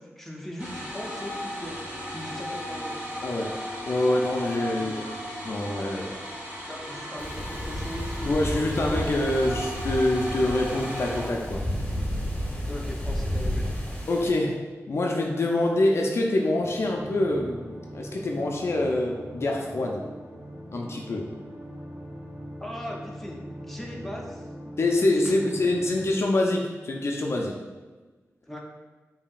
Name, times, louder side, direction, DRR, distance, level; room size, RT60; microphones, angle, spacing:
voice 1, 0.0-1.8 2.1-2.9 4.7-5.1 6.7-9.1 12.7-13.6 22.6-24.8 25.1-25.5 28.5-28.6, equal, 5° left, -2 dB, 0.7 m, -39 dB
sound 1, 0.6-11.8, equal, 25° right, 1.4 m, -36 dB
voice 2, 3.2-3.5 3.9-4.9 5.4-6.1 8.3-11.6 14.1-20.0 20.7-21.3 24.8-27.5, left 1 dB, 55° left, 0 dB, 0.4 m, -25 dB
sound 2, 7.2-14.3, equal, 25° left, 1.0 m, -31 dB
sound 3, 16.6-26.1, equal, 55° right, 1.2 m, -41 dB
4.9 x 2.7 x 2.4 m, 1.3 s
cardioid pair, 65°, 5 cm